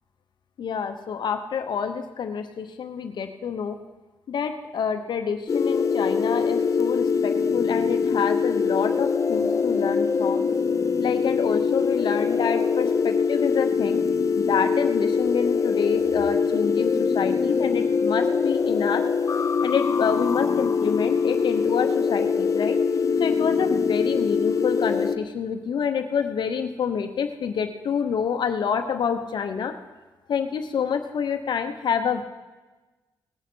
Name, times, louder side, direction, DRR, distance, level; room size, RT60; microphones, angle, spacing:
voice 1, 0.6-3.8 4.3-10.4 11.0-14.0 14.4-19.1 19.6-22.8 23.2-29.7 30.3-32.2, left 7 dB, 65° left, 7 dB, 1.0 m, -27 dB
sound 1, 5.5-25.2, left 5 dB, 40° left, 0.6 m, -23 dB
19.0 x 8.8 x 4.6 m, 1.2 s
cardioid pair, 90°, 8 cm